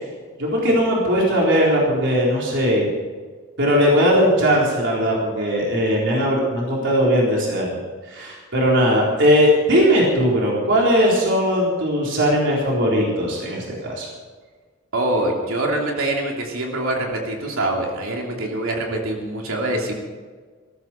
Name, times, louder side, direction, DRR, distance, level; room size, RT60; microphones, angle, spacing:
voice 1, 0.4-2.9 3.6-7.7 8.1-14.1, equal, 60° right, -4 dB, 4.1 m, -19 dB
voice 2, 14.9-19.9, right 1 dB, 85° right, 0 dB, 3.0 m, -24 dB
19.0 x 14.5 x 4.5 m, 1.5 s
head